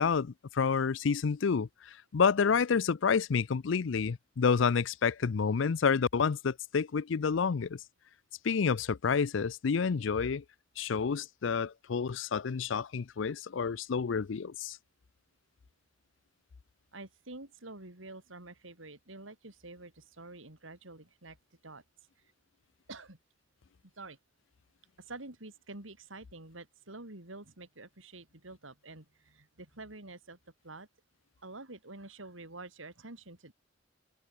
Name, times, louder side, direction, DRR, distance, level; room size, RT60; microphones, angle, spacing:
voice 1, 0.0-1.7 2.1-7.8 8.4-10.4 10.8-14.8, left 5 dB, 70° left, 0.5 m, -29 dB
voice 2, 16.9-21.4 21.6-21.8 22.9-23.2 23.8-24.2 25.0-30.4 30.6-30.9 31.4-33.5, right 2 dB, 80° right, 4.1 m, -48 dB
head